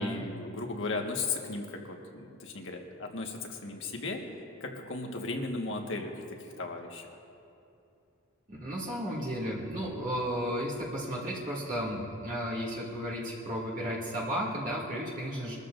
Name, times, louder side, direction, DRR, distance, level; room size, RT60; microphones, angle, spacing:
voice 1, 0.0-4.2 4.6-6.3 6.6-7.1, left 3 dB, 60° left, 2 dB, 1.5 m, -36 dB
voice 2, 8.5-15.6, equal, 40° right, -7 dB, 2.3 m, -34 dB
22.5 x 13.5 x 2.6 m, 2.7 s
head